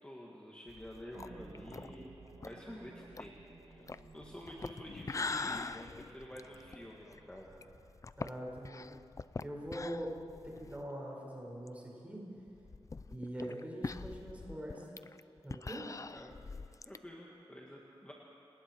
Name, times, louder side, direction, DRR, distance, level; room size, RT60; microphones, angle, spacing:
voice 1, 0.0-2.1 2.4-3.3 3.7-7.5 16.1-16.4 16.9-18.1, equal, 10° left, -3 dB, 2.0 m, -49 dB
Drinking Sounds, 0.7-10.9 11.3-11.4 11.7-11.8 12.5-17.0, left 3 dB, 35° left, 0.4 m, -44 dB
sound 1, 1.1-8.1, right 3 dB, 75° right, 2.5 m, -56 dB
voice 2, 8.2-9.0 9.4-12.2 13.0-14.9 15.4-15.9, equal, 15° right, -3 dB, 5.6 m, -43 dB
30.0 x 19.0 x 4.7 m, 3.0 s
wide cardioid pair, 115°, 10 cm